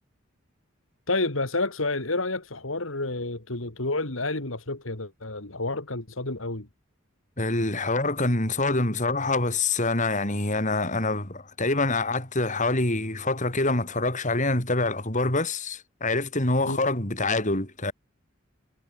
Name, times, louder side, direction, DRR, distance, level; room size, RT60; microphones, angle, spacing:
voice 1, 1.1-6.7 16.6-16.9, left 2 dB, 85° left, 3.4 m, -29 dB
voice 2, 7.4-17.9, left 2 dB, 40° left, 6.3 m, -25 dB
head